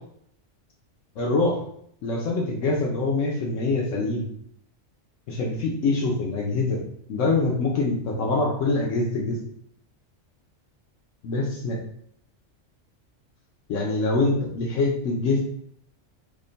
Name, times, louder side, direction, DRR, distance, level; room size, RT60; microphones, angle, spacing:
voice 1, 1.2-1.6 2.0-4.3 5.3-6.8 7.1-9.4 11.2-11.8 13.7-15.4, left 3 dB, 80° left, -2 dB, 1.0 m, -24 dB
3.5 x 2.1 x 3.9 m, 0.68 s
omnidirectional pair, 1.3 m